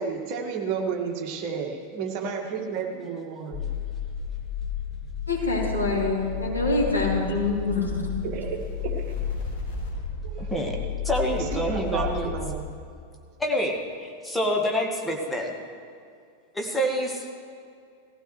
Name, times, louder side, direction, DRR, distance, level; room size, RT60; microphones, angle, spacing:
voice 1, 0.0-3.7 8.2-9.2 10.2-10.9 11.3-12.7, right 6 dB, 40° right, 1 dB, 1.8 m, -32 dB
sound 1, 3.5-12.6, left 6 dB, 55° left, 4.2 m, -32 dB
voice 2, 5.3-8.1, left 2 dB, 80° left, -5 dB, 3.4 m, -25 dB
voice 3, 10.4-10.8 11.0-12.3 13.4-15.5 16.5-17.4, equal, 5° left, 0 dB, 1.7 m, -27 dB
18.5 x 15.5 x 3.2 m, 2.4 s
figure-of-eight pair, 90°, 0 cm